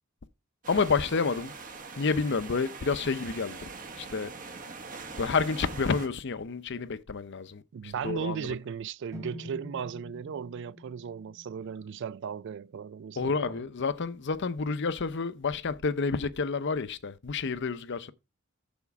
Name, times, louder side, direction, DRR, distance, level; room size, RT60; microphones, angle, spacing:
sound 1, 0.6-6.1, right 4 dB, 40° right, 1.3 m, -43 dB
voice 1, 0.7-1.5 2.0-3.7 4.0-4.3 5.2-8.5 13.2-18.1, left 4 dB, 55° left, 0.7 m, -29 dB
voice 2, 7.7-13.6, right 7 dB, 55° right, 0.3 m, -36 dB
sound 2, 9.1-13.1, left 1 dB, 15° right, 1.6 m, -47 dB
7.2 x 4.4 x 6.9 m
head